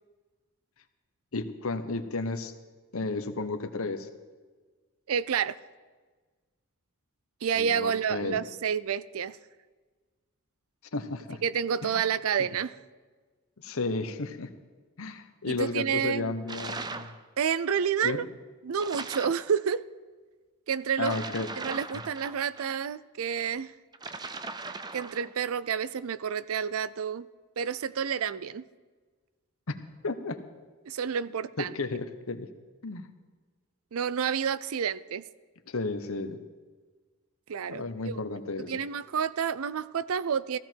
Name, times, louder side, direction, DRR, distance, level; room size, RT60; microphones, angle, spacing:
voice 1, 1.3-2.5 2.9-4.1 7.6-8.4 10.9-11.4 11.8-12.0 12.4-12.5 13.6-14.5 15.0-17.1 18.0-18.3 21.0-21.5 29.7-30.4 31.6-32.5 32.8-33.1 35.7-36.4 37.7-38.8, left 3 dB, 70° left, 9 dB, 1.0 m, -33 dB
voice 2, 5.1-5.6 7.4-9.4 11.4-12.7 15.5-16.3 17.4-18.2 18.6-19.8 20.7-21.2 21.6-23.7 24.9-27.3 27.6-28.6 30.9-31.7 33.9-35.2 37.5-38.1 38.7-40.6, right 7 dB, 75° right, 16 dB, 0.4 m, -29 dB
sound 1, 16.5-17.2 18.8-19.5 21.0-22.7 23.9-25.3, right 3 dB, 20° right, 0.5 m, -38 dB
16.0 x 14.5 x 4.5 m, 1.4 s
head